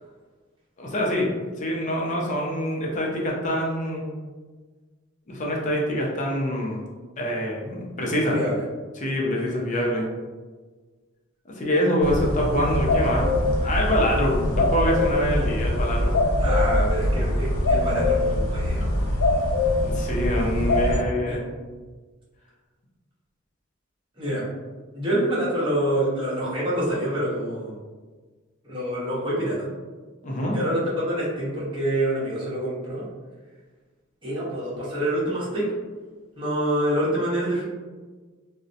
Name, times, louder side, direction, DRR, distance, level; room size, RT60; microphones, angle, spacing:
voice 1, 0.8-4.1 5.3-6.9 7.2-8.4 8.9-10.0 11.5-13.3 13.6-16.2 19.8-21.5 30.2-30.6, equal, 35° left, -2 dB, 0.5 m, -25 dB
sound 1, 12.0-21.0, left 1 dB, 85° left, 0.5 m, -23 dB
voice 2, 16.4-18.9 21.3-21.4 24.2-24.4 24.9-27.7 28.6-29.7 30.5-33.0 34.2-35.6 36.4-37.6, right 1 dB, 25° right, -8 dB, 0.9 m, -26 dB
2.7 x 2.0 x 2.5 m, 1.4 s
head